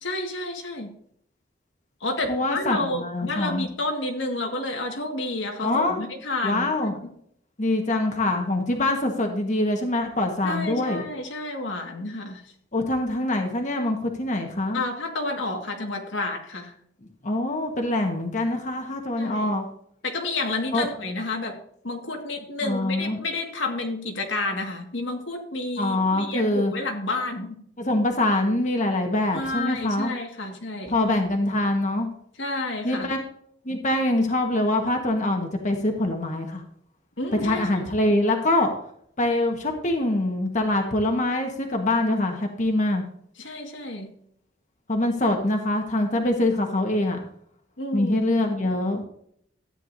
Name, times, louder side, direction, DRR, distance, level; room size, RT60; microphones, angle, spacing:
voice 1, 0.0-0.9 2.0-7.0 10.4-12.4 14.7-16.7 19.2-19.6 20.0-21.6 21.8-27.6 29.3-31.0 32.4-33.1 37.2-37.8 43.4-44.1 47.8-48.5, left 2 dB, 85° left, 2 dB, 1.8 m, -30 dB
voice 2, 2.3-3.7 5.6-6.0 6.4-7.0 7.6-11.0 12.7-14.8 17.2-19.6 20.7-20.9 22.6-23.2 25.8-26.7 27.8-30.1 30.9-32.1 32.8-33.2 33.6-36.6 37.4-38.7 39.2-43.0 44.9-47.2 47.9-49.0, left 1 dB, 40° left, 3 dB, 1.3 m, -24 dB
13.0 x 9.2 x 2.7 m, 0.67 s
head